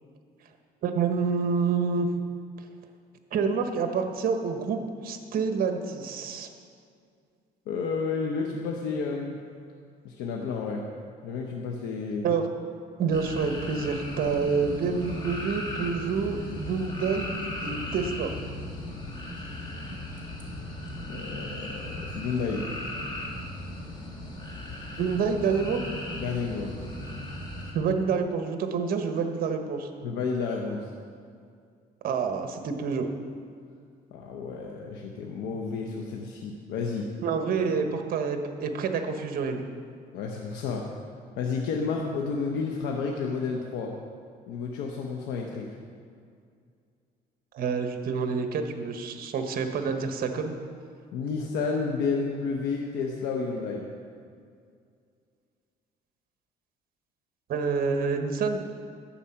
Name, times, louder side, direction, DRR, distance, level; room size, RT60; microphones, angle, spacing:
voice 1, 0.8-2.1 3.3-6.5 12.2-12.5 13.0-18.3 25.0-25.8 27.7-29.9 32.0-33.1 37.2-39.6 47.5-50.5 57.5-58.6, right 5 dB, 60° right, 6 dB, 1.2 m, -28 dB
voice 2, 7.7-9.4 10.0-10.9 11.2-12.3 21.1-22.7 26.2-26.8 30.0-30.9 34.1-37.1 40.1-40.9 41.4-43.9 44.5-45.7 51.1-53.9, left 5 dB, 90° left, 0 dB, 1.0 m, -31 dB
sound 1, 13.1-27.7, left 1 dB, 25° left, 2.4 m, -37 dB
11.5 x 8.3 x 5.8 m, 2.3 s
cardioid pair, 110°, 17 cm